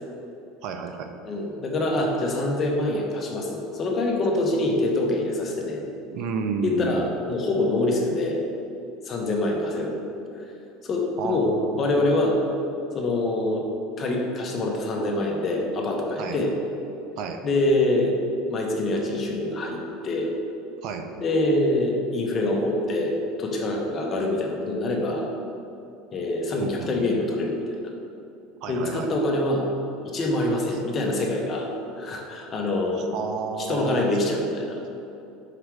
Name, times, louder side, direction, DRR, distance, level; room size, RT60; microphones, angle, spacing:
voice 1, 0.6-1.1 6.1-7.1 11.2-12.1 16.2-16.4 17.2-17.4 20.8-21.1 26.6-27.1 28.6-29.1 30.7-30.8 32.9-34.0, right 5 dB, 55° right, 6 dB, 0.5 m, -31 dB
voice 2, 1.2-5.8 6.6-8.4 9.0-9.9 10.8-11.5 11.8-12.4 12.9-13.7 14.0-16.5 17.4-18.2 18.5-20.3 21.2-25.3 26.1-27.6 28.7-29.7 30.1-31.7 32.0-33.1 33.7-34.7, left 2 dB, 30° left, 0 dB, 1.0 m, -25 dB
5.3 x 4.9 x 4.7 m, 2.7 s
supercardioid pair, 145°, 0 cm